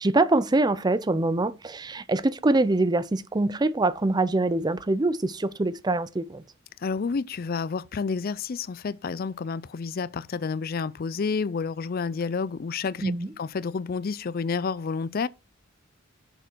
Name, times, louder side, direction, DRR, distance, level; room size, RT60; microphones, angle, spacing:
voice 1, 0.0-6.4 13.0-13.3, right 2 dB, 20° right, 0.5 m, -24 dB
voice 2, 6.8-15.3, left 5 dB, 45° left, 0.4 m, -30 dB
6.8 x 6.2 x 4.5 m
head